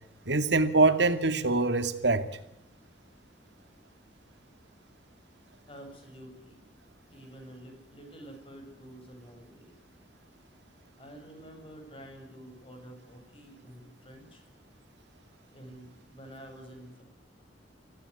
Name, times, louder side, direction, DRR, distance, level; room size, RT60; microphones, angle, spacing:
voice 1, 0.2-2.3, right 3 dB, 70° right, 9 dB, 2.4 m, -24 dB
voice 2, 5.7-6.7 7.1-9.7 11.0-14.4 15.5-17.0, right 1 dB, 30° left, 4 dB, 7.5 m, -49 dB
26.0 x 16.5 x 9.9 m, 0.77 s
head